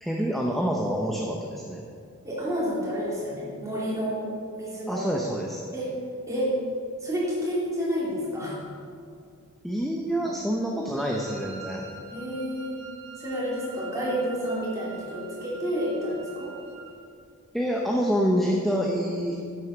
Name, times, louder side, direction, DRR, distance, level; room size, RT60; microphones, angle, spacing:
voice 1, 0.0-1.8 4.9-5.6 9.6-11.9 17.5-19.4, equal, ahead, -1 dB, 0.7 m, -27 dB
voice 2, 2.2-4.3 4.5-5.1 5.7-5.9 6.3-6.5 7.0-8.6 12.1-12.9 13.2-16.5, equal, 15° right, -7 dB, 3.2 m, -29 dB
Wind instrument woodwind instrument, 11.0-17.0, right 5 dB, 55° right, 1.6 m, -45 dB
10.5 x 8.0 x 6.0 m, 2.3 s
head